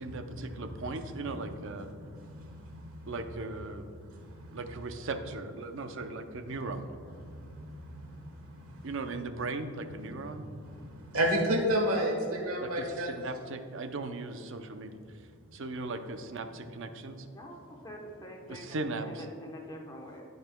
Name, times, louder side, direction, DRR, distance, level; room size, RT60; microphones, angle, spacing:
voice 1, 0.0-1.9 3.1-3.9 4.5-6.9 8.8-10.4 11.1-11.2 12.6-15.0 15.5-17.3 18.5-19.3, right 3 dB, 55° right, 8 dB, 0.6 m, -38 dB
voice 2, 2.1-2.9 4.1-4.2 7.3-8.8 10.5-13.1, equal, 75° right, 1 dB, 1.3 m, -32 dB
voice 3, 17.3-20.3, equal, 15° left, 0 dB, 1.0 m, -45 dB
16.0 x 5.4 x 2.2 m, 2.6 s
head